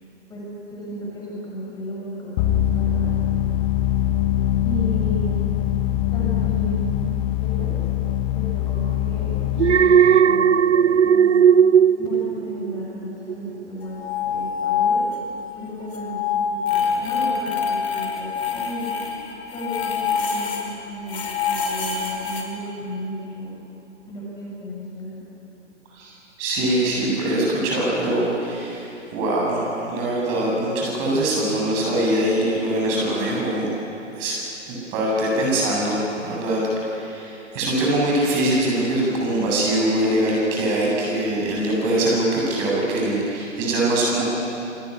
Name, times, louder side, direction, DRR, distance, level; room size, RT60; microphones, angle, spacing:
voice 1, 0.7-3.1 4.6-5.3 6.1-7.1 7.4-7.8 8.3-11.3 12.0-15.0 15.5-18.9 19.5-23.5 24.1-25.2, equal, 10° left, -5 dB, 7.7 m, -34 dB
sound 1, 2.4-9.8, left 12 dB, 25° left, 1.5 m, -22 dB
Alarm, 9.6-12.9 13.3-13.6, right 8 dB, 70° right, 0.6 m, -16 dB
sound 2, 13.8-15.4 15.7-20.7 21.1-22.4, left 6 dB, 55° left, 5.4 m, -25 dB
voice 2, 26.4-33.7 34.2-34.4 34.7-44.3, right 1 dB, 25° right, -3 dB, 7.9 m, -23 dB
27.0 x 20.5 x 10.0 m, 2.8 s
figure-of-eight pair, 125°, 37 cm